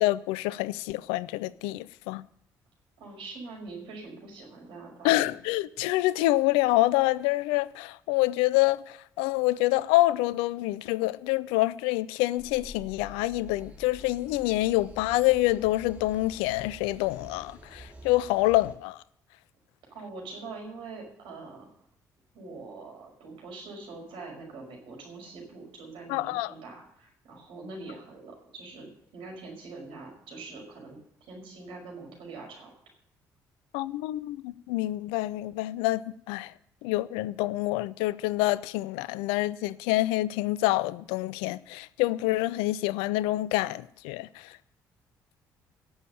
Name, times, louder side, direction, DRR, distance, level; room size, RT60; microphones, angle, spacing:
voice 1, 0.0-2.2 5.0-19.0 26.1-26.5 33.7-36.5 36.8-44.5, left 18 dB, 70° left, 0.4 m, -27 dB
voice 2, 3.0-5.2 19.9-21.7 22.3-28.9 29.1-31.0 31.3-32.7, right 3 dB, 65° right, 5.5 m, -43 dB
sound 1, 12.4-18.7, equal, 15° right, 3.5 m, -48 dB
18.0 x 7.2 x 6.8 m
figure-of-eight pair, 45°, 10 cm